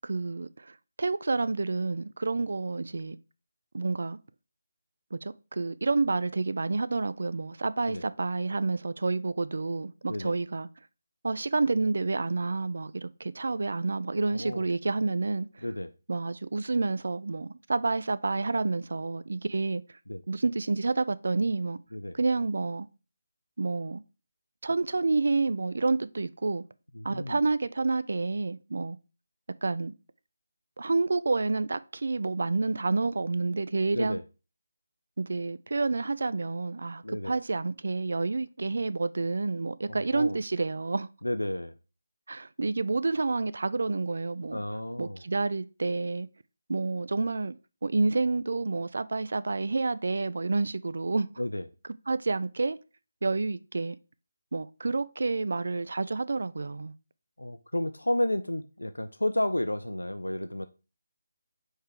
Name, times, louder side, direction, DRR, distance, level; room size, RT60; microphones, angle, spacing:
voice 1, 0.0-3.2 3.7-4.2 5.1-10.7 11.2-15.6 16.1-19.8 20.3-21.8 22.1-22.9 23.6-24.0 24.6-26.6 27.0-29.0 29.6-29.9 30.8-34.2 35.2-41.1 42.3-44.6 45.0-46.3 46.7-47.5 47.8-51.3 52.1-52.8 53.2-54.0 54.5-56.9, right 3 dB, 60° right, 0.4 m, -29 dB
voice 2, 14.3-14.7 15.6-15.9 20.1-20.2 21.9-22.2 26.9-27.4 33.9-34.2 37.0-37.3 39.9-40.4 41.2-41.7 44.5-45.2 51.4-51.7 57.4-60.7, left 1 dB, 85° left, 0.5 m, -31 dB
4.8 x 4.6 x 4.6 m
figure-of-eight pair, 155°, 0 cm